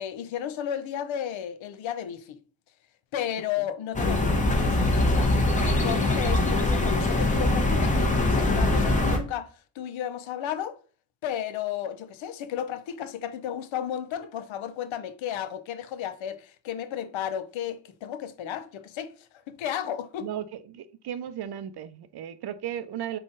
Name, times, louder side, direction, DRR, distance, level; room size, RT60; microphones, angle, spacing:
voice 1, 0.0-2.4 3.1-5.3 5.6-10.8 11.2-20.3, left 10 dB, 75° left, 0.6 m, -33 dB
sound 1, 3.9-9.2, left 2 dB, 15° left, 0.8 m, -23 dB
voice 2, 20.7-23.2, right 10 dB, 55° right, 0.5 m, -35 dB
3.8 x 2.4 x 3.8 m
cardioid pair, 90°, 47 cm